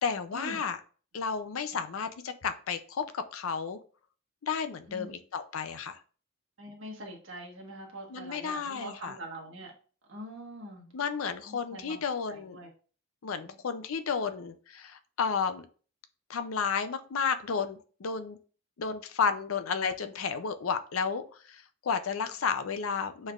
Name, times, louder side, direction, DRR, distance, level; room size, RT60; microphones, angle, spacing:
voice 1, 0.0-0.8 1.1-3.8 4.4-6.0 8.1-9.2 10.9-12.6 13.2-15.7 16.3-18.4 18.8-23.3, left 6 dB, 80° left, 10 dB, 0.5 m, -32 dB
voice 2, 6.6-9.7 10.1-11.0 11.4-12.0 12.3-12.7 13.5-13.6, right 1 dB, 65° right, 0 dB, 1.3 m, -44 dB
6.3 x 3.3 x 2.4 m, 0.40 s
head